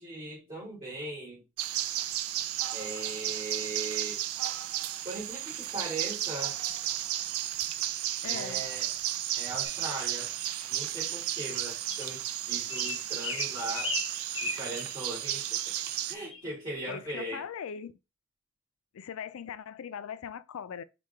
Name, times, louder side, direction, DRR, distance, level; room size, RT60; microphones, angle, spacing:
voice 1, 0.0-1.4 2.7-4.2 5.0-6.6 8.2-8.9 9.3-10.3 10.7-14.0 14.4-15.7 16.1-17.5, right 2 dB, 25° right, 2.4 m, -39 dB
sound 1, 1.6-16.2, right 12 dB, 80° right, 0.4 m, -33 dB
voice 2, 8.2-8.6 16.9-18.0 18.9-20.8, left 7 dB, 75° left, 0.4 m, -40 dB
sound 2, 9.6-9.8 10.7-10.8 11.4-11.6 11.9-12.1 12.7-14.9 15.3-15.4 15.8-16.0 16.3-16.5, left 3 dB, 25° left, 0.6 m, -37 dB
4.7 x 2.3 x 4.3 m
head